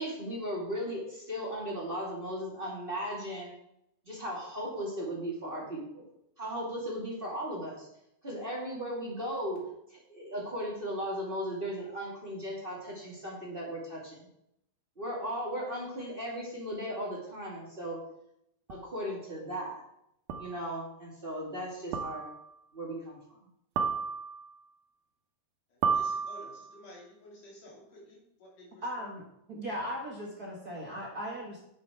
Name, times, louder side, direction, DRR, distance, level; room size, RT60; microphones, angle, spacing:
voice 1, 0.0-3.5 4.0-6.0 6.4-7.9 8.2-9.6 9.9-14.3 15.0-18.0 18.7-19.7 20.4-22.3 22.7-23.4, equal, 20° right, -4 dB, 2.5 m, -36 dB
sound 1, 18.7-18.8 20.3-20.7 21.9-22.5 23.8-24.5 25.8-26.8, right 5 dB, 85° right, 2.5 m, -32 dB
voice 2, 25.7-29.1, left 1 dB, 85° left, -3 dB, 4.5 m, -52 dB
voice 3, 28.8-29.2 29.5-31.6, equal, 40° right, -3 dB, 1.4 m, -37 dB
10.0 x 7.5 x 4.5 m, 0.79 s
omnidirectional pair, 3.6 m